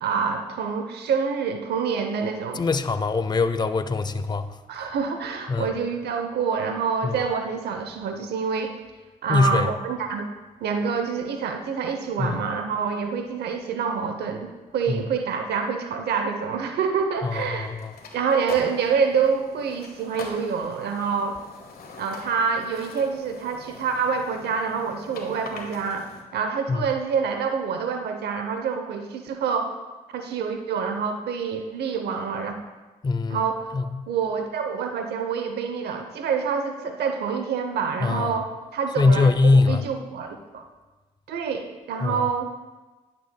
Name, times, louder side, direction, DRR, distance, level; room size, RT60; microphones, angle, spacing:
voice 1, 0.0-2.6 4.7-8.7 9.2-10.3 10.6-17.7 18.1-21.4 22.0-29.8 30.1-32.6 33.3-33.7 34.1-40.6 41.3-42.5, right 6 dB, 75° right, 6 dB, 0.7 m, -27 dB
voice 2, 2.5-4.5 5.5-5.7 7.0-7.2 9.3-9.7 12.2-12.4 14.9-15.0 17.2-17.9 26.7-26.8 33.0-33.4 33.7-33.8 38.0-38.4 39.0-39.8 42.0-42.3, left 3 dB, 25° left, 11 dB, 0.5 m, -22 dB
sound 1, 17.3-26.2, left 4 dB, 60° left, 1.4 m, -43 dB
11.0 x 7.6 x 2.2 m, 1.2 s
supercardioid pair, 55°, 17 cm